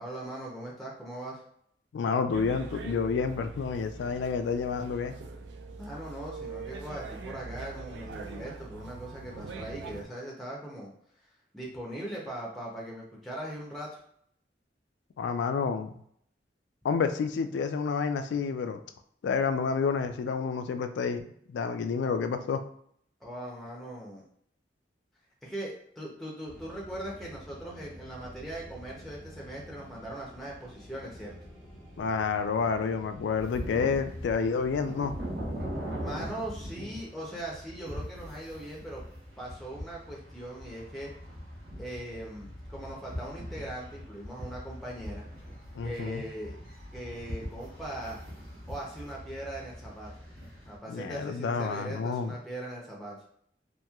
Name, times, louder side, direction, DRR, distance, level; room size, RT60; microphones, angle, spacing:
voice 1, 0.0-1.4 5.8-10.9 11.5-14.0 23.2-24.2 25.4-31.4 36.0-39.0 39.4-41.1 41.8-45.3 45.8-46.6 46.9-48.2 48.7-50.1 50.7-53.2, right 1 dB, ahead, -3 dB, 0.5 m, -40 dB
voice 2, 1.9-5.1 15.2-15.9 16.8-18.8 19.2-22.6 32.0-35.2 45.7-46.2 50.9-52.3, left 5 dB, 80° left, 8 dB, 0.3 m, -29 dB
sound 1, 2.3-10.0, right 4 dB, 75° right, 0.3 m, -42 dB
sound 2, 26.5-33.6, equal, 25° right, 1.0 m, -49 dB
sound 3, 33.4-50.8, equal, 60° right, 1.1 m, -41 dB
3.0 x 2.7 x 2.3 m, 0.65 s
head